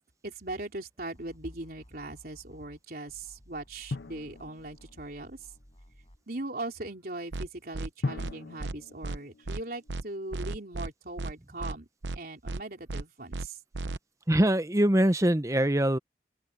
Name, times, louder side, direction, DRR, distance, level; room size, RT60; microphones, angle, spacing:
voice 1, 0.2-5.4 6.3-11.9 12.1-13.6, right 2 dB, 55° right, 4.0 m, -39 dB
sound 1, 1.1-2.8 3.1-6.2, equal, 30° left, 5.8 m, -56 dB
Drum, 3.9-5.4 8.0-10.2, left 3 dB, 70° left, 0.6 m, -39 dB
sound 2, 7.3-7.5 7.7-7.9 8.2-8.3 8.6-8.7 9.0-9.2 9.5-9.6 9.9-10.0 10.3-10.9 11.2-11.3 11.6-11.7 12.0-12.2 12.5-12.6 12.9-13.0 13.3-13.5 13.7-14.0, right 2 dB, 75° right, 0.8 m, -34 dB
voice 2, 14.3-16.0, right 1 dB, 15° right, 0.8 m, -23 dB
open air
head